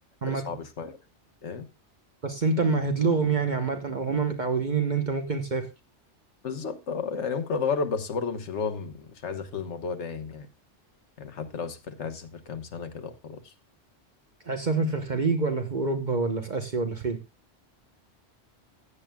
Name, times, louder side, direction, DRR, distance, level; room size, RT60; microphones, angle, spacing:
voice 1, 0.3-1.0 1.4-1.7 6.4-10.5 11.2-13.5, left 5 dB, 75° left, 1.4 m, -32 dB
voice 2, 2.2-5.7 14.5-17.2, right 4 dB, 40° right, 1.1 m, -26 dB
15.0 x 8.7 x 2.3 m
omnidirectional pair, 1.2 m